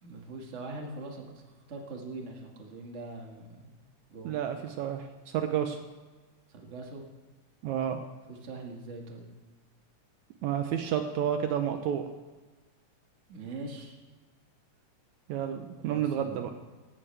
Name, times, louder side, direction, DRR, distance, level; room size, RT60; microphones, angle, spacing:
voice 1, 0.0-1.2 1.7-3.8 4.1-4.4 6.5-7.0 8.3-9.3 13.3-14.0 15.8-16.4, right 2 dB, 30° right, 1 dB, 1.7 m, -42 dB
voice 2, 4.2-5.8 7.6-8.0 10.4-12.0 15.3-16.5, right 9 dB, 75° right, 7 dB, 2.0 m, -30 dB
17.5 x 13.5 x 3.4 m, 1.3 s
omnidirectional pair, 3.6 m